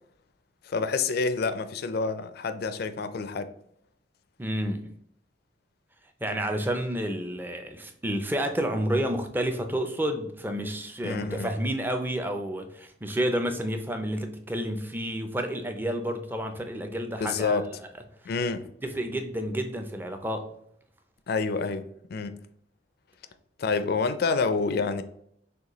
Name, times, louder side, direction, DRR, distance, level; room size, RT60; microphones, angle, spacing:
voice 1, 0.6-3.5 11.0-11.5 17.2-17.7 18.3-18.6 21.3-22.4 23.6-25.0, left 4 dB, 55° left, 0.4 m, -28 dB
voice 2, 4.4-4.9 6.2-17.6 18.8-20.5, right 1 dB, 10° right, 0.4 m, -30 dB
6.5 x 2.3 x 3.0 m
head